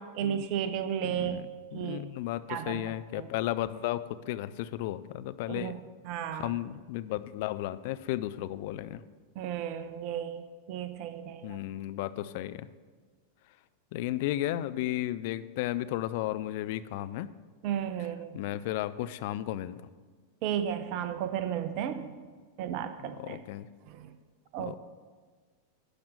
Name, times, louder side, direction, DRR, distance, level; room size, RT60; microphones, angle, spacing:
voice 1, 0.0-1.4 1.7-2.0 2.5-2.8 3.2-3.3 5.5-5.8 6.1-6.5 9.4-10.4 10.7-11.6 17.6-18.3 20.4-22.1 22.6-23.4 24.0-24.1 24.5-24.8, right 9 dB, 45° right, 10 dB, 0.6 m, -33 dB
voice 2, 1.0-5.8 6.3-9.0 11.4-12.7 13.9-17.3 18.0-18.1 18.3-19.8 23.0-23.7 24.6-24.8, left 14 dB, 50° left, 13 dB, 0.4 m, -34 dB
11.5 x 5.1 x 6.5 m, 1.5 s
figure-of-eight pair, 90°, 0 cm